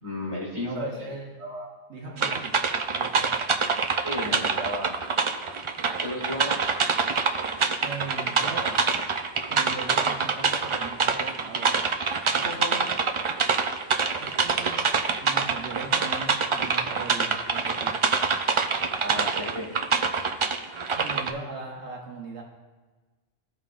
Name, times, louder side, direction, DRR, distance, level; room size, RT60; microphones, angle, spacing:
voice 1, 0.0-1.1 1.4-1.7 4.0-5.0 6.0-6.6 12.3-12.8 19.0-19.7, equal, 25° right, -5 dB, 2.3 m, -33 dB
voice 2, 0.6-1.3 1.9-3.4 7.8-8.8 9.5-11.7 14.2-14.8 15.2-18.0 20.9-22.4, right 3 dB, 80° right, 0 dB, 1.2 m, -39 dB
sound 1, 2.2-21.3, right 5 dB, 55° right, 0.3 m, -25 dB
15.5 x 5.4 x 2.4 m, 1.3 s
omnidirectional pair, 1.1 m